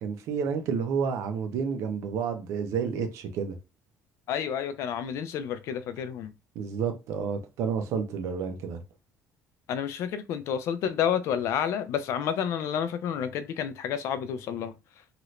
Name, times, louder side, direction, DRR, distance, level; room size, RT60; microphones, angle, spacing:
voice 1, 0.0-3.6 6.5-8.8, right 6 dB, 65° right, 0.7 m, -30 dB
voice 2, 4.3-6.3 9.7-14.7, left 8 dB, 60° left, 0.4 m, -30 dB
2.8 x 2.5 x 3.1 m
cardioid pair, 180°, 5 cm